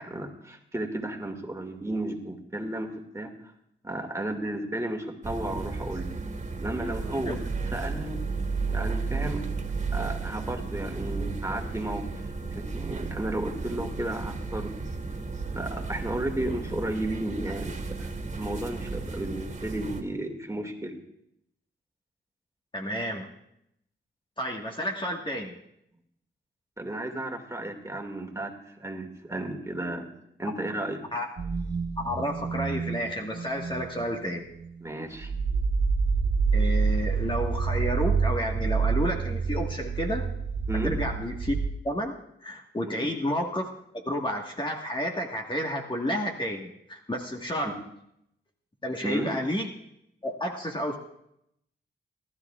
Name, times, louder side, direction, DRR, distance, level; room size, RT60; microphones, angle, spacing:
voice 1, 0.0-2.9 3.1-3.3 3.8-6.1 6.6-7.4 7.7-8.2 8.7-9.5 9.9-14.7 15.5-21.0 26.8-30.1 30.4-31.0 34.8-35.3 40.7-40.9 42.8-43.1 47.6-47.7 49.0-49.3, right 1 dB, 15° right, 3 dB, 2.1 m, -33 dB
sound 1, 5.2-20.0, right 4 dB, 35° right, 2.1 m, -33 dB
voice 2, 22.7-23.3 24.4-25.6 31.1-31.3 32.0-34.5 36.5-40.3 40.8-41.5 41.8-43.7 44.0-47.8 48.8-49.7 50.2-51.0, equal, 25° left, 1 dB, 1.5 m, -31 dB
sound 2, 31.4-34.1 34.5-34.8 35.2-41.7, right 5 dB, 55° right, 1.6 m, -28 dB
29.0 x 12.5 x 2.4 m, 0.79 s
cardioid pair, 70°, 20 cm